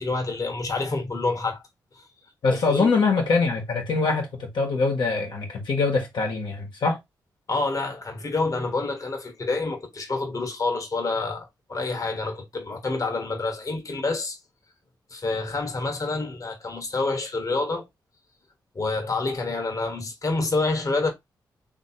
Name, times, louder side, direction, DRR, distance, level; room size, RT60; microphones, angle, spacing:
voice 1, 0.0-1.6 1.9-2.0 2.5-2.9 7.5-14.4 15.1-17.8 18.7-21.1, left 3 dB, 45° left, 1.3 m, -28 dB
voice 2, 2.4-7.0, left 4 dB, 80° left, 1.5 m, -23 dB
3.3 x 3.2 x 4.3 m
cardioid pair, 65°, 8 cm